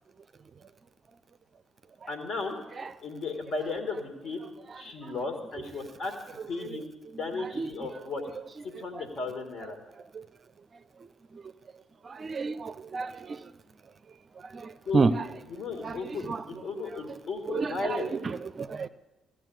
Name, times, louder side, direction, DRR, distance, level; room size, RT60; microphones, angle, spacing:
voice 1, 2.1-2.6 3.0-4.4 4.8-6.1 6.5-6.9 7.2-8.2 8.8-9.8 14.9-15.1 15.5-18.1, left 3 dB, 50° left, 2.3 m, -35 dB
voice 2, 12.3-13.1 14.9-15.1 15.8-16.0 16.3-16.4 17.5-17.7 18.6-18.9, right 4 dB, 40° right, 0.5 m, -27 dB
15.0 x 6.4 x 8.0 m
figure-of-eight pair, 45°, 0 cm